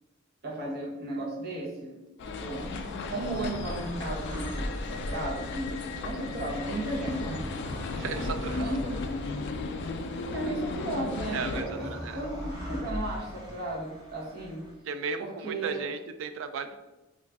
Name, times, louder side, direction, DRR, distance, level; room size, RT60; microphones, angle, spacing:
voice 1, 0.4-2.0 2.4-2.7 3.1-7.5 8.6-8.9 9.3-9.7 10.3-11.9 12.1-14.7 15.2-15.8, right 1 dB, 55° right, -2 dB, 0.9 m, -35 dB
sound 1, 2.2-11.6, left 3 dB, 60° left, 0.3 m, -35 dB
sound 2, 2.3-14.7, equal, 20° right, 0.9 m, -41 dB
voice 2, 7.9-8.6 11.3-12.2 14.9-16.8, right 5 dB, 75° right, 10 dB, 0.3 m, -35 dB
3.0 x 2.5 x 3.4 m, 1.0 s
head